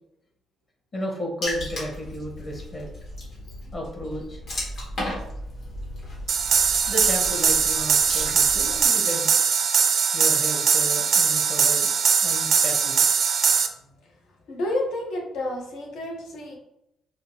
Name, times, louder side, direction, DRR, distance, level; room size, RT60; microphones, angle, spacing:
voice 1, 0.9-2.9 3.7-4.4 6.9-9.3 10.1-11.9 12.2-13.0, equal, 40° left, -1 dB, 1.2 m, -33 dB
Water / Splash splatter, 1.4-8.8, left 1 dB, 65° left, 1.5 m, -35 dB
sound 1, 6.3-13.7, right 6 dB, 60° right, 0.4 m, -21 dB
voice 2, 14.5-16.6, left 1 dB, 80° left, 0 dB, 0.9 m, -30 dB
4.9 x 2.1 x 2.8 m, 0.82 s
cardioid pair, 90°, 0 cm